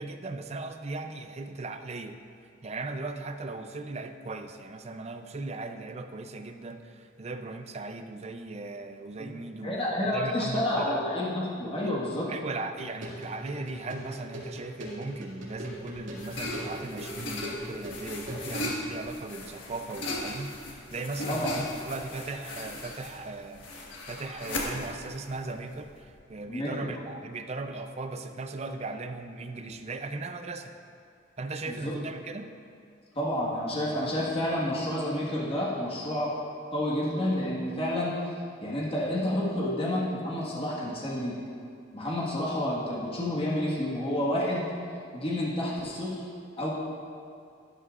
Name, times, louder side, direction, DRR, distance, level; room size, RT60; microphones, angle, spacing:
voice 1, 0.0-2.2 2.6-11.1 11.8-12.0 12.3-23.8 24.1-30.7 31.4-32.5, right 3 dB, 35° right, 7 dB, 0.5 m, -38 dB
voice 2, 9.6-12.3 21.3-21.5 26.5-26.9 31.6-31.9 33.1-36.3 36.7-38.1 38.6-41.4 41.9-44.7 45.1-46.2 46.6-46.7, left 1 dB, 30° left, -6 dB, 1.6 m, -29 dB
sound 1, 12.8-18.6, equal, 80° right, 2.3 m, -40 dB
sound 2, 15.5-26.1, left 1 dB, 80° left, 1.5 m, -37 dB
12.5 x 11.0 x 2.5 m, 2.5 s
head